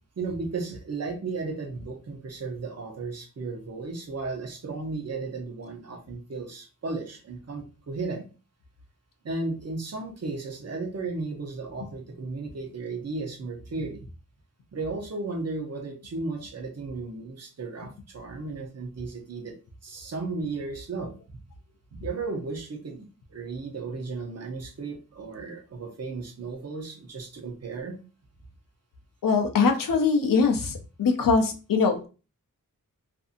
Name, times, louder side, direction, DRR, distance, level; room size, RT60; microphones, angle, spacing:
voice 1, 0.2-8.3 9.2-14.1 14.7-19.5 19.8-21.1 22.0-28.0, right 3 dB, 50° right, 2 dB, 0.7 m, -34 dB
voice 2, 29.2-32.1, left 4 dB, 75° left, 5 dB, 0.6 m, -22 dB
2.6 x 2.6 x 2.5 m, 0.34 s
wide cardioid pair, 125°, 34 cm